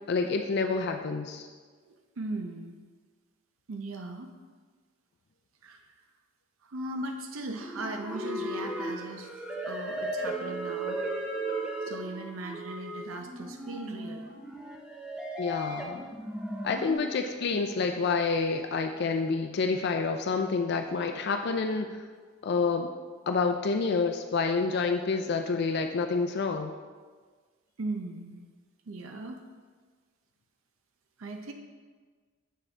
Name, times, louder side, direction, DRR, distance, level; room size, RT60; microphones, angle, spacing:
voice 1, 0.1-1.5 15.4-16.0 16.6-22.0 22.4-22.9 23.3-26.7, left 4 dB, 55° left, 5 dB, 0.4 m, -28 dB
voice 2, 1.9-2.8 3.7-4.3 5.6-5.9 6.6-9.3 9.7-11.0 11.8-14.2 27.8-28.4 28.9-29.4 31.2-31.5, right 2 dB, 85° right, 4 dB, 0.6 m, -38 dB
sound 1, 7.6-17.0, right 1 dB, 5° right, 0.6 m, -36 dB
7.5 x 6.2 x 3.3 m, 1.5 s
head